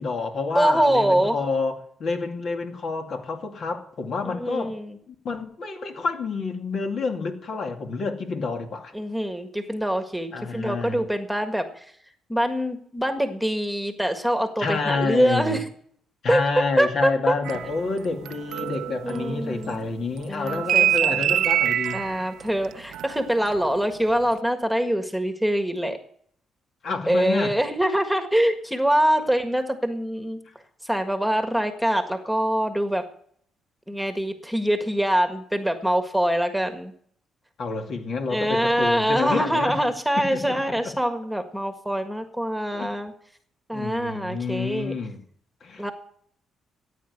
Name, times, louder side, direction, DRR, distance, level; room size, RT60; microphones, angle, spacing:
voice 1, 0.0-4.8 5.1-8.9 10.3-11.0 14.6-15.6 16.2-22.0 26.8-27.6 30.5-30.6 37.6-39.8 40.2-40.9 42.7-42.9 43.7-45.2 45.6-45.9, left 4 dB, 60° left, 2.4 m, -29 dB
voice 2, 0.6-1.4 4.2-5.0 8.9-11.9 12.3-15.6 16.3-17.3 19.0-19.9 20.3-21.5 21.9-26.0 27.1-30.4 30.8-33.1 33.9-36.9 38.3-43.1 43.7-44.9 45.8-45.9, right 1 dB, ahead, 1.7 m, -24 dB
sound 1, 17.5-19.9 20.1-23.8 24.1-24.4, right 11 dB, 80° right, 0.6 m, -26 dB
14.5 x 9.3 x 6.7 m
cardioid pair, 90°, 0 cm